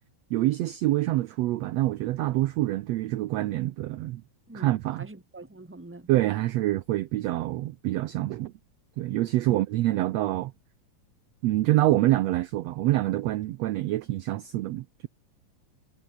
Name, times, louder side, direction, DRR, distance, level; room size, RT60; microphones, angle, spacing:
voice 1, 0.3-4.2 4.5-5.1 6.1-8.5 9.0-10.5 11.4-15.1, right 16 dB, 80° right, 1.5 m, -26 dB
voice 2, 4.5-6.1 9.5-9.6, right 2 dB, 5° right, 1.7 m, -44 dB
omnidirectional pair, 3.8 m